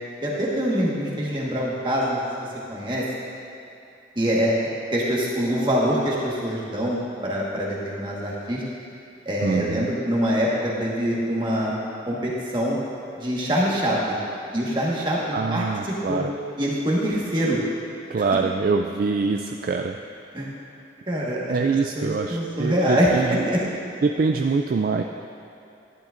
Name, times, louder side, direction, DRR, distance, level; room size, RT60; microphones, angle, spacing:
voice 1, 0.2-3.1 4.1-4.6 4.9-8.6 9.2-11.8 12.1-12.8 13.2-14.2 14.5-16.2 16.6-17.6 18.2-18.3 20.3-20.5 21.1-21.6 21.9-23.6, equal, 25° right, -5 dB, 1.5 m, -24 dB
voice 2, 9.4-9.9 15.3-16.2 18.1-20.0 21.5-23.4 24.0-25.0, right 4 dB, 50° right, 3 dB, 0.3 m, -24 dB
12.0 x 10.5 x 2.5 m, 2.8 s
head